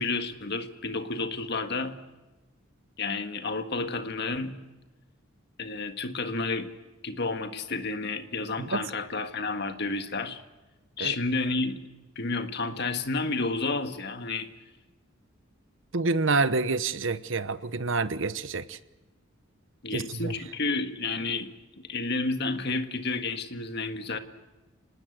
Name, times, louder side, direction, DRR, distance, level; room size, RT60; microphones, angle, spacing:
voice 1, 0.0-2.0 3.0-4.6 5.6-6.7 7.0-10.4 11.0-11.8 12.2-14.5 19.8-21.5 21.8-24.2, left 3 dB, 55° left, 8 dB, 1.7 m, -31 dB
voice 2, 15.9-18.8 19.9-20.3, right 3 dB, 65° right, 14 dB, 1.0 m, -28 dB
26.0 x 19.5 x 8.1 m, 1.1 s
head